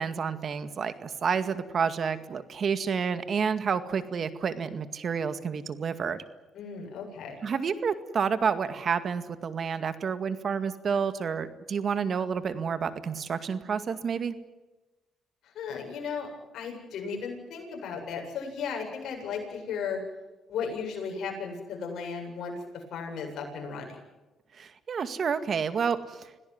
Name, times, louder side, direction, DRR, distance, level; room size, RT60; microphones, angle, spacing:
voice 1, 0.0-6.2 7.4-14.3 24.5-26.3, right 6 dB, 50° right, 11 dB, 2.0 m, -29 dB
voice 2, 6.5-7.4 15.4-16.3 16.5-20.0 20.5-24.0, left 6 dB, 75° left, 2 dB, 8.0 m, -35 dB
26.5 x 17.5 x 9.5 m, 1.1 s
cardioid pair, 90°, 0 cm